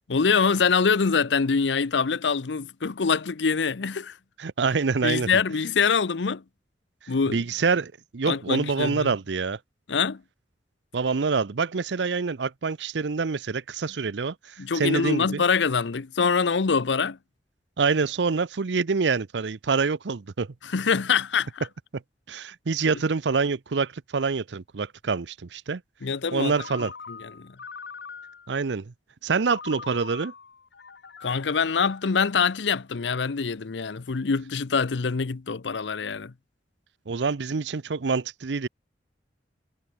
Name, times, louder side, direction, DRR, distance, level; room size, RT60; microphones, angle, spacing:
voice 1, 0.1-4.2 5.0-6.4 7.1-7.4 8.2-9.1 9.9-10.2 14.6-17.2 20.6-21.7 26.0-26.5 27.1-27.6 31.2-36.3, left 5 dB, 85° left, 0.7 m, -24 dB
voice 2, 4.4-5.3 7.3-9.6 10.9-15.4 17.8-20.5 21.9-22.0 22.3-25.8 26.3-26.9 28.5-28.9 29.2-30.3 37.1-38.7, right 4 dB, 80° right, 0.6 m, -26 dB
Ringtone, 26.5-28.6 29.4-32.8, left 5 dB, 70° left, 1.0 m, -43 dB
head